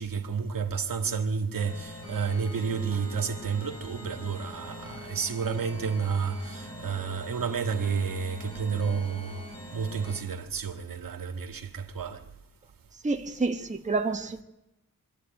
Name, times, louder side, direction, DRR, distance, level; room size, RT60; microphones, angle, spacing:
voice 1, 0.0-9.4 9.7-12.2, right 6 dB, 75° right, 2.0 m, -31 dB
sound 1, 1.5-10.2, left 1 dB, 45° left, 6.7 m, -43 dB
voice 2, 13.0-14.4, right 3 dB, 20° right, 1.2 m, -28 dB
23.0 x 13.5 x 9.0 m
wide cardioid pair, 95°, 34 cm